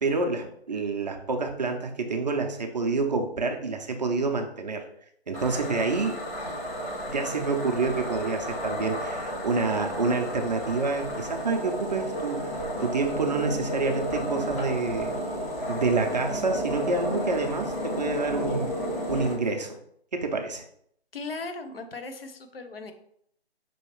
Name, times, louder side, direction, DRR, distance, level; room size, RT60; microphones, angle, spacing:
voice 1, 0.0-4.9 5.3-6.2 7.1-15.2 15.7-18.7 19.1-19.8 20.1-20.6, right 3 dB, 40° right, 4 dB, 0.6 m, -28 dB
sound 1, 5.3-19.3, equal, 35° left, 1.8 m, -32 dB
voice 2, 21.1-22.9, left 3 dB, 65° left, 7 dB, 0.8 m, -37 dB
5.5 x 3.0 x 3.0 m, 0.68 s
figure-of-eight pair, 155°, 32 cm